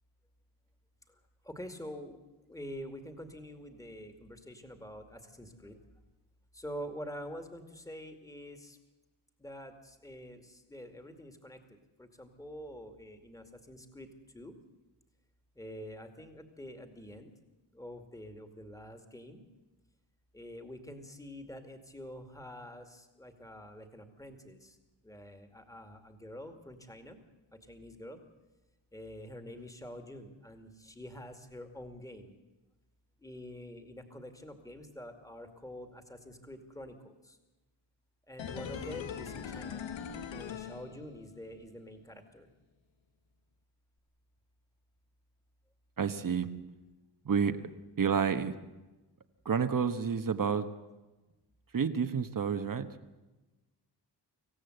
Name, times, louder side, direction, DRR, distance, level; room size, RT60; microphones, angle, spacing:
voice 1, 1.4-2.2 2.5-5.8 6.5-8.8 9.4-11.6 12.0-14.1 14.3-14.5 15.6-17.3 17.7-19.4 20.3-24.8 25.0-27.2 27.5-28.2 28.9-32.4 33.2-37.4 38.3-39.8 40.3-42.5, equal, 10° left, 6 dB, 2.3 m, -46 dB
sound 1, 38.4-41.5 41.8-41.9, left 7 dB, 90° left, 1.6 m, -41 dB
voice 2, 46.0-46.5 47.2-47.5 48.0-48.5 49.4-50.7 51.7-52.9, right 6 dB, 45° right, 9 dB, 1.3 m, -29 dB
26.0 x 16.5 x 8.0 m, 1.1 s
wide cardioid pair, 140°, 44 cm